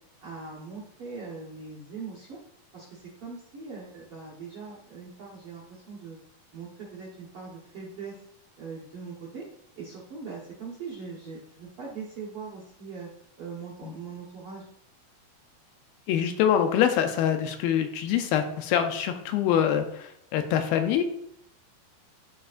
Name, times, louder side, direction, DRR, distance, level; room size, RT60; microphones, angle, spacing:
voice 1, 0.2-2.4 2.7-6.2 6.5-8.2 8.6-9.4 9.8-13.1 13.4-14.6, right 5 dB, 65° right, -6 dB, 1.4 m, -41 dB
voice 2, 16.1-21.0, left 9 dB, 80° left, 7 dB, 2.3 m, -25 dB
12.0 x 4.7 x 2.5 m, 0.75 s
omnidirectional pair, 4.4 m